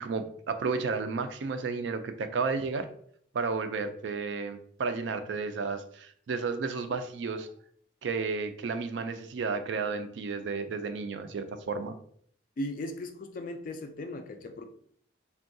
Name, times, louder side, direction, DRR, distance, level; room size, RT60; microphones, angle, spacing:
voice 1, 0.0-2.9 3.3-7.5 8.0-11.9, right 4 dB, 65° right, 9 dB, 0.3 m, -32 dB
voice 2, 12.6-14.7, left 1 dB, 45° left, 7 dB, 0.3 m, -37 dB
3.5 x 2.2 x 2.6 m, 0.62 s
head